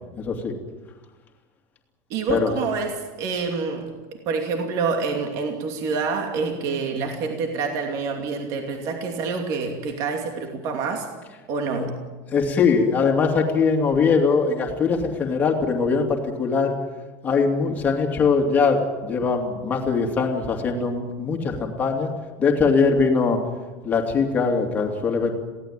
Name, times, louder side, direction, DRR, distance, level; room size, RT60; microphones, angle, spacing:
voice 1, 0.2-0.5 2.3-2.5 11.8-11.9 12.3-16.7 17.2-22.1 22.4-23.4 23.8-25.3, left 5 dB, 15° left, 1 dB, 2.7 m, -21 dB
voice 2, 2.1-3.9 4.3-11.1 11.5-12.0, right 4 dB, 40° right, 3 dB, 2.7 m, -27 dB
22.5 x 17.0 x 9.1 m, 1.3 s
cardioid pair, 180°, 9 cm